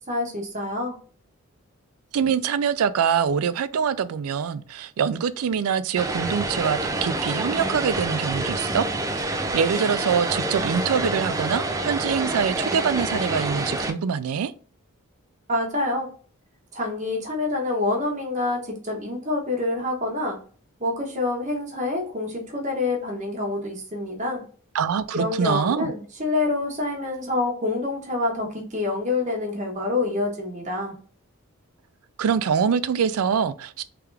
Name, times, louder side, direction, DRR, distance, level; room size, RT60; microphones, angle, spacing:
voice 1, 0.1-1.0 15.5-16.1 16.7-20.4 20.8-24.4 25.1-31.0, left 2 dB, 35° right, 1.2 m, -27 dB
voice 2, 2.1-14.5 24.7-25.9 32.2-33.8, right 7 dB, 85° right, 0.4 m, -24 dB
Vehicle, 6.0-13.9, right 2 dB, 15° right, 0.3 m, -27 dB
3.5 x 3.4 x 3.3 m
head